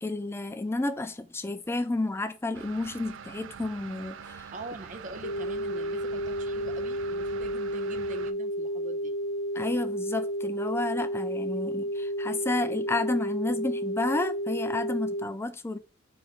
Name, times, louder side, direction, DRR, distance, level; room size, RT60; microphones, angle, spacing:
voice 1, 0.0-4.4 9.6-15.8, left 2 dB, 15° left, 0.4 m, -31 dB
sound 1, 2.5-8.3, right 7 dB, 75° right, 0.4 m, -45 dB
voice 2, 4.5-9.1, right 2 dB, 40° right, 0.8 m, -43 dB
sound 2, 5.2-15.2, equal, 70° left, 0.8 m, -31 dB
4.1 x 3.6 x 3.5 m
head